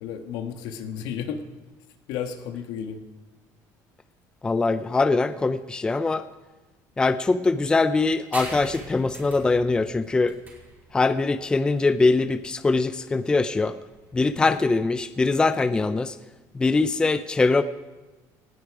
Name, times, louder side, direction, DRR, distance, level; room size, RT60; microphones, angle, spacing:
voice 1, 0.0-1.4 2.1-3.0 14.4-14.6, left 8 dB, 75° left, 7 dB, 1.7 m, -33 dB
voice 2, 4.4-6.2 7.0-10.4 10.9-13.8 14.1-16.2 16.5-17.6, left 3 dB, 10° left, 12 dB, 0.5 m, -22 dB
sound 1, 8.3-15.4, right 2 dB, 25° right, 4.7 m, -44 dB
19.0 x 15.5 x 4.9 m, 1.2 s
cardioid pair, 155°, 7 cm